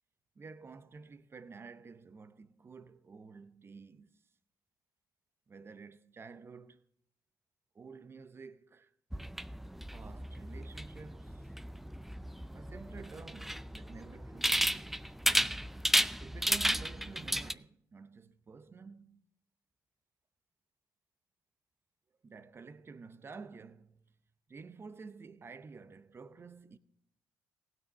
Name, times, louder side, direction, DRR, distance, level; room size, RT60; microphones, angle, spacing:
voice 1, 0.4-4.2 5.5-6.8 7.7-8.9 9.9-11.5 12.5-15.0 16.2-19.3 22.2-24.0 24.5-26.8, right 4 dB, 35° right, 0.7 m, -51 dB
sound 1, 9.1-17.5, equal, 5° right, 0.4 m, -33 dB
16.5 x 6.3 x 5.3 m
cardioid pair, 75°, 7 cm